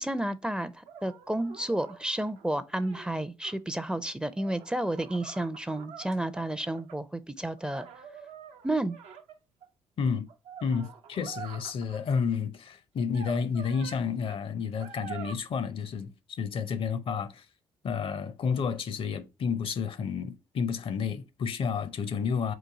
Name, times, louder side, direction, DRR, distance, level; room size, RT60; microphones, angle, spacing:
voice 1, 0.0-7.9 8.6-9.0, right 1 dB, 5° right, 0.5 m, -31 dB
sound 1, 0.9-3.6 4.3-7.0 7.6-9.7 10.3-12.0 13.0-14.0 14.3-14.4 14.8-15.3, right 7 dB, 65° right, 0.6 m, -46 dB
voice 2, 10.0-10.3 10.6-17.5 17.8-22.5, left 6 dB, 50° left, 0.6 m, -31 dB
3.9 x 2.6 x 4.7 m
hypercardioid pair, 50°, 11 cm